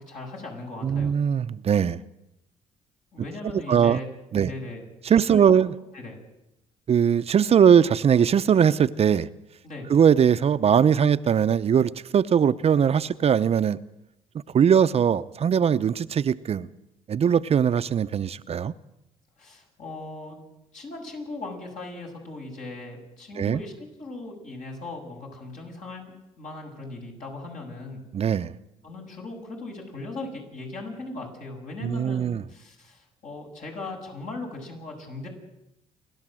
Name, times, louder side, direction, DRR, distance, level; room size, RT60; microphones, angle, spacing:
voice 1, 0.0-1.1 3.1-4.1 4.4-4.8 5.3-5.4 5.9-6.2 9.6-9.9 19.4-20.4 20.7-28.0 28.8-35.3, left 2 dB, 60° left, 7.4 m, -38 dB
voice 2, 0.8-2.0 3.7-4.0 4.3-4.5 5.0-5.7 6.9-9.3 9.9-13.8 14.5-16.7 17.1-18.7 23.4-23.6 28.1-28.5 31.8-32.4, right 8 dB, 45° right, 0.7 m, -20 dB
30.0 x 12.0 x 7.7 m
supercardioid pair, 70°, 14 cm